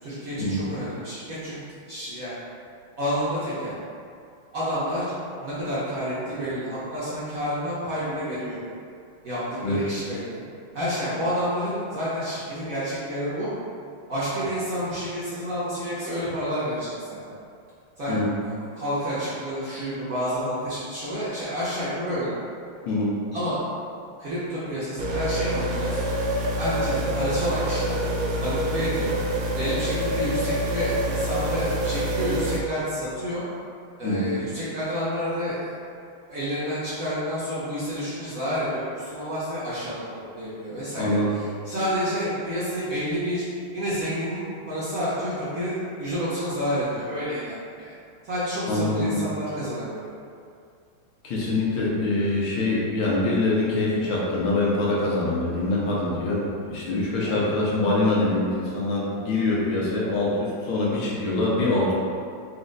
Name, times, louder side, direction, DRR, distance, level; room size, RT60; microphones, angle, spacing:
voice 1, 0.0-1.6 1.9-2.3 3.0-3.7 4.5-5.1 5.4-8.6 9.2-10.4 10.7-13.5 14.1-17.2 18.0-22.3 23.3-23.6 24.2-26.1 26.6-28.0 28.4-29.2 29.5-33.4 34.0-35.7 36.3-40.0 40.4-43.4 43.7-47.9 48.2-50.1 57.2-57.5, equal, 55° right, -11 dB, 1.0 m, -29 dB
sound 1, 25.0-32.6, right 1 dB, 90° right, 0.8 m, -26 dB
voice 2, 41.0-41.3 48.7-49.2 51.2-61.9, left 2 dB, 75° left, -6 dB, 1.6 m, -24 dB
4.2 x 2.4 x 3.8 m, 2.4 s
omnidirectional pair, 2.3 m